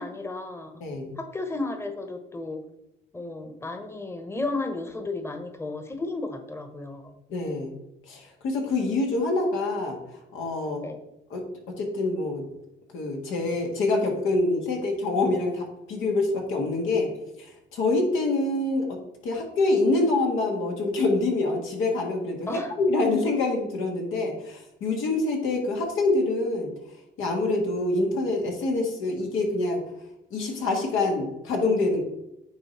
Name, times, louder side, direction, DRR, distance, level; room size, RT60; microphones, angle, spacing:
voice 1, 0.0-0.7 1.2-2.6 3.1-7.1 10.8-11.0 22.5-22.8, left 2 dB, 15° left, 7 dB, 1.0 m, -33 dB
voice 2, 0.8-1.1 7.3-7.7 8.1-10.8 11.3-12.4 12.9-17.1 17.4-19.0 19.2-26.7 27.2-29.8 30.3-32.0, left 2 dB, 90° left, 1 dB, 1.8 m, -26 dB
9.5 x 3.8 x 4.3 m, 0.88 s
cardioid pair, 90°, 20 cm